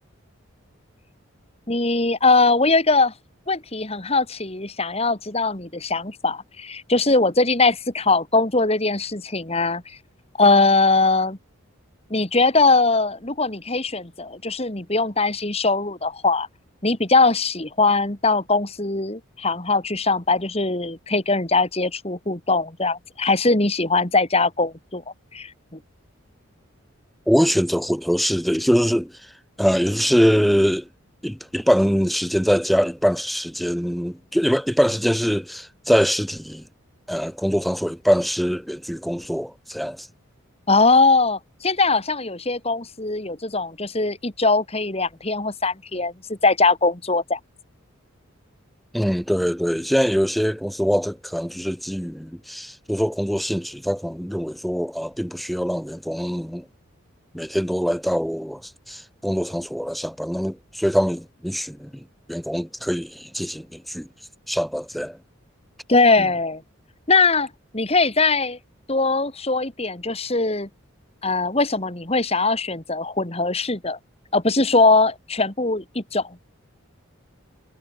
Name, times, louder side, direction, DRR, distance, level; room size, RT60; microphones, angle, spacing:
voice 1, 1.7-3.1 3.5-10.0 10.4-11.4 12.1-16.5 16.8-25.0 25.3-25.5 40.7-47.4 65.9-66.6 67.1-68.6 68.9-70.7 71.2-74.0 74.3-76.4, left 3 dB, 30° left, 2.1 m, -21 dB
voice 2, 27.3-29.3 29.6-30.9 31.2-36.7 37.1-40.1 48.9-56.6 57.3-64.1 64.5-65.2, equal, ahead, 0.9 m, -23 dB
head